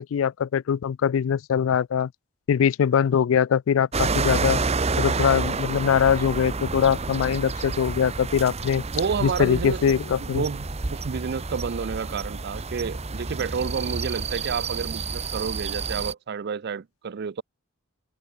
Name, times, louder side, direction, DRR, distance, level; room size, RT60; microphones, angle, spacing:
voice 1, 0.0-2.1 2.5-4.6 5.0-8.8 9.2-10.4, left 8 dB, 70° left, 0.3 m, -22 dB
sound 1, 3.9-16.1, right 4 dB, 30° right, 0.9 m, -29 dB
voice 2, 8.7-17.4, right 6 dB, 55° right, 0.5 m, -30 dB
head